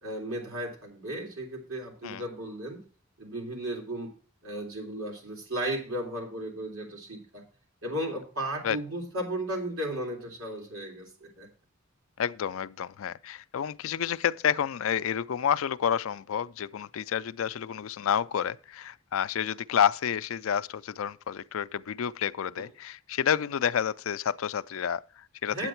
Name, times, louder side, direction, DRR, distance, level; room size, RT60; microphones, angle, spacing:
voice 1, 0.0-2.8 3.2-4.1 4.4-7.4 7.8-11.5 22.6-22.7 25.4-25.7, right 1 dB, 85° right, 3.3 m, -35 dB
voice 2, 12.2-25.7, left 8 dB, 75° left, 0.4 m, -29 dB
9.0 x 7.9 x 4.5 m
head